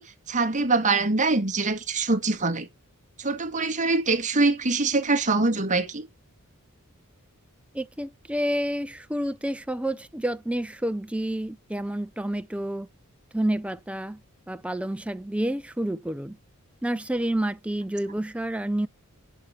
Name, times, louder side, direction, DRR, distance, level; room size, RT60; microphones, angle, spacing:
voice 1, 0.0-2.7 3.2-6.1, right 3 dB, 35° right, 1.8 m, -24 dB
voice 2, 7.7-12.9 13.3-14.2 14.5-16.4 16.8-18.9, right 1 dB, 5° right, 0.5 m, -29 dB
11.0 x 5.1 x 5.7 m
head